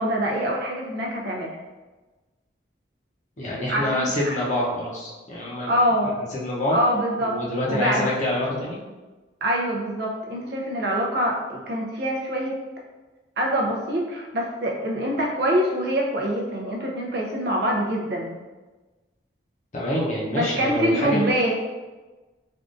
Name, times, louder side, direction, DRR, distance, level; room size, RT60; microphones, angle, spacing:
voice 1, 0.0-1.6 3.7-4.4 5.7-6.2 6.7-7.4 7.7-8.1 9.4-12.5 13.4-18.4 20.3-21.5, equal, 60° right, -1 dB, 0.5 m, -25 dB
voice 2, 3.4-5.7 6.3-6.8 7.2-8.8 19.7-21.3, left 1 dB, 40° left, -5 dB, 0.7 m, -26 dB
3.5 x 2.4 x 2.5 m, 1.2 s
head